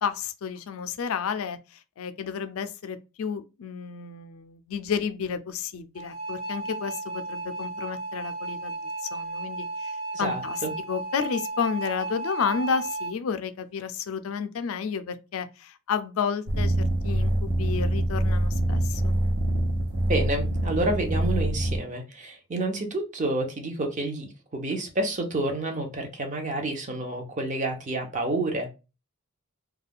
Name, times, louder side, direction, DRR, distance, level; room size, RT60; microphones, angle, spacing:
voice 1, 0.0-10.6 10.9-19.2, left 6 dB, 70° left, 0.4 m, -31 dB
sound 1, 5.9-13.1, right 2 dB, 85° right, 1.4 m, -34 dB
voice 2, 10.1-10.7 20.1-28.7, right 2 dB, 35° right, 0.6 m, -29 dB
sound 2, 16.5-21.8, right 1 dB, 70° right, 0.7 m, -25 dB
2.3 x 2.2 x 3.4 m
head